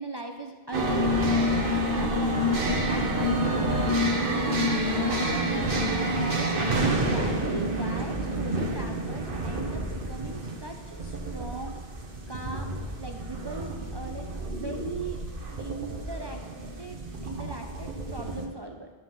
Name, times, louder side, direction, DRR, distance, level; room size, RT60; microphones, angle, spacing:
voice 1, 0.0-4.3 4.8-5.7 6.1-11.8 12.3-14.3 14.5-15.2 15.6-16.4 16.8-18.9, right 2 dB, 45° right, 3 dB, 0.3 m, -39 dB
sound 1, 0.7-18.5, equal, 60° right, 1.2 m, -28 dB
12.0 x 5.5 x 3.0 m, 1.3 s
omnidirectional pair, 1.1 m